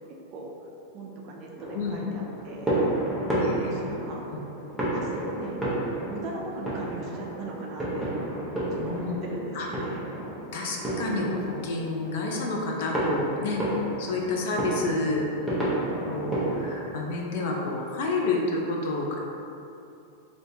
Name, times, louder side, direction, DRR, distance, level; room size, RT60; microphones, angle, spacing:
voice 1, 0.3-0.7 0.9-2.7 3.5-4.3 4.9-5.6 6.1-8.1 8.7-10.1, right 2 dB, 35° right, -1 dB, 0.4 m, -39 dB
sound 1, 1.6-16.7, right 1 dB, ahead, 0.7 m, -31 dB
voice 2, 3.4-3.8 4.3-4.4 8.8-9.1 9.5-9.7 10.5-13.6 14.0-15.6 16.0-19.2, left 3 dB, 60° left, -1 dB, 0.5 m, -29 dB
3.5 x 2.5 x 2.7 m, 2.7 s
supercardioid pair, 150°, 0 cm